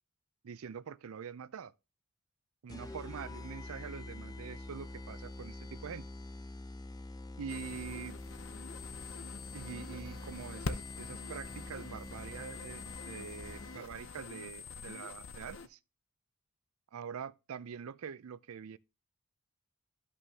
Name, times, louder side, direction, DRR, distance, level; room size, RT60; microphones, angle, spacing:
voice 1, 0.4-1.7 2.6-6.1 7.4-8.2 9.5-15.8 16.9-18.8, right 7 dB, 75° right, 0.4 m, -45 dB
sound 1, 2.7-14.1, left 2 dB, 15° left, 0.4 m, -46 dB
sound 2, 7.5-15.7, left 4 dB, 60° left, 0.7 m, -45 dB
12.5 x 5.5 x 2.8 m
head